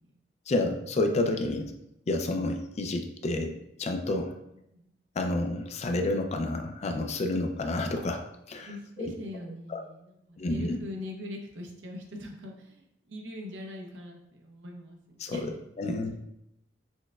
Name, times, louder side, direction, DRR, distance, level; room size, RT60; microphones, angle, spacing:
voice 1, 0.5-1.7 2.1-4.3 5.2-8.7 9.0-9.1 9.7-9.8 10.4-10.8 15.2-16.1, left 2 dB, 35° left, 4 dB, 0.4 m, -30 dB
voice 2, 8.7-15.5 15.8-16.2, left 1 dB, 85° right, 1 dB, 0.7 m, -42 dB
6.1 x 2.1 x 2.3 m, 0.82 s
head